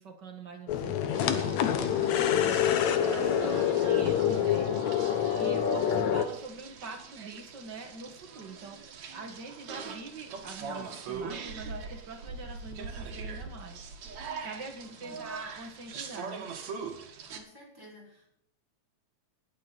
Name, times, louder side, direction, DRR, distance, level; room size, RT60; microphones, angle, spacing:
voice 1, 0.0-2.6 3.0-4.7 5.4-8.8 9.1-16.5, right 4 dB, 40° right, 3 dB, 1.9 m, -44 dB
sound 1, 0.7-6.3, left 9 dB, 70° left, 2.2 m, -26 dB
sound 2, 1.1-17.4, right 5 dB, 65° right, 3.0 m, -42 dB
voice 2, 15.0-15.3 17.3-18.3, left 1 dB, 5° right, -2 dB, 5.5 m, -53 dB
20.0 x 8.5 x 4.2 m, 0.68 s
omnidirectional pair, 3.6 m